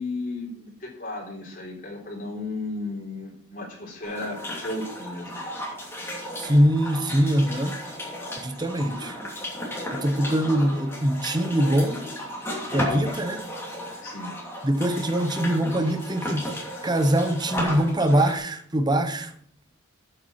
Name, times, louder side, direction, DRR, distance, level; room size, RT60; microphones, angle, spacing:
voice 1, 0.0-5.4 14.0-14.3, left 2 dB, 40° left, 3.7 m, -34 dB
sound 1, 4.0-18.4, left 1 dB, 10° left, 2.8 m, -34 dB
voice 2, 6.4-7.8 8.4-9.1 9.9-12.0 12.7-13.4 14.6-16.5 16.8-19.3, right 1 dB, 20° right, 0.8 m, -23 dB
8.0 x 7.9 x 5.7 m
head